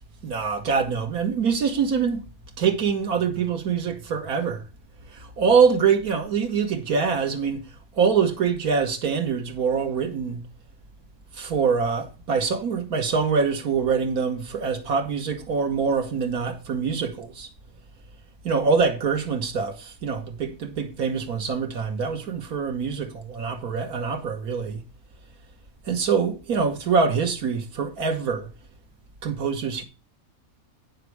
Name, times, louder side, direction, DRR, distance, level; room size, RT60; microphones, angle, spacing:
voice 1, 0.2-2.2 2.6-4.6 5.1-7.6 8.0-10.4 11.3-17.5 18.4-24.8 25.9-28.5 29.2-29.8, right 5 dB, 90° right, 1.8 m, -24 dB
9.4 x 6.7 x 4.7 m
omnidirectional pair, 1.5 m